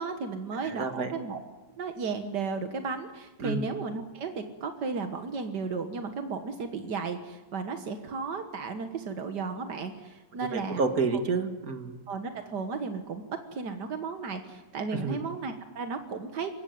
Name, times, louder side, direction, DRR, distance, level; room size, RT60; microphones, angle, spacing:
voice 1, 0.0-1.4 1.8-10.8 11.1-11.2 12.1-13.2 13.5-16.5, right 4 dB, 70° right, 7 dB, 1.0 m, -34 dB
voice 2, 0.6-1.1 3.4-3.7 10.5-12.0 15.0-15.2, right 4 dB, 35° right, 6 dB, 1.8 m, -29 dB
27.5 x 16.0 x 9.5 m, 1.2 s
omnidirectional pair, 4.0 m